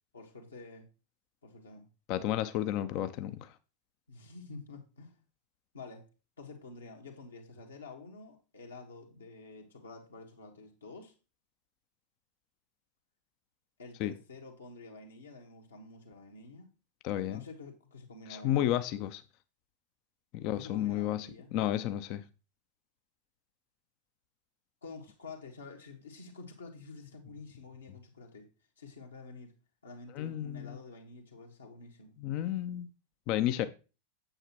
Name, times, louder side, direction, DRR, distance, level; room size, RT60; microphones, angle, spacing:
voice 1, 0.1-0.9 1.4-1.9 4.1-5.2 5.7-6.1 6.4-11.1 13.8-16.7 17.2-18.8 20.4-21.5 24.8-28.5 28.8-29.5 29.8-32.1, left 3 dB, 75° left, 1.8 m, -49 dB
voice 2, 2.1-3.5 14.0-14.1 17.0-17.4 18.3-19.2 20.3-22.2 30.2-30.8 32.2-32.9 33.3-33.7, left 12 dB, 40° left, 0.5 m, -32 dB
8.9 x 7.4 x 3.0 m
figure-of-eight pair, 90°, 0 cm